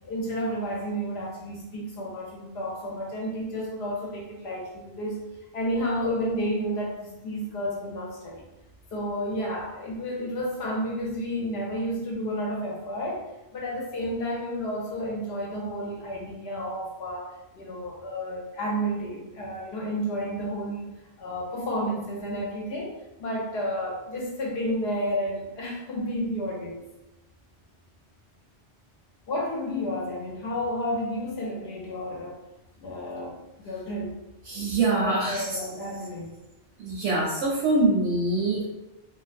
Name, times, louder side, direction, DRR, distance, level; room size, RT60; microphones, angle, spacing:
voice 1, 0.0-5.2 5.5-8.4 8.9-13.3 13.5-20.9 21.2-26.8 29.3-32.4 32.8-34.2 35.0-36.3, equal, 70° left, -3 dB, 0.9 m, -31 dB
voice 2, 34.5-35.5 36.8-38.7, right 2 dB, 90° right, -4 dB, 0.9 m, -24 dB
2.5 x 2.0 x 2.4 m, 0.99 s
omnidirectional pair, 1.2 m